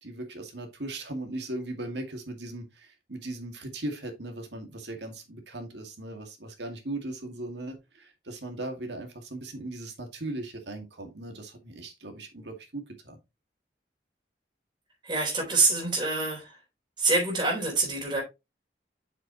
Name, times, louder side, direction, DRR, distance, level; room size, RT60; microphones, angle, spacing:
voice 1, 0.0-13.2, right 2 dB, 85° right, 2.1 m, -38 dB
voice 2, 15.0-16.6 17.0-18.2, right 3 dB, 25° right, 3.5 m, -26 dB
7.6 x 6.3 x 3.0 m
head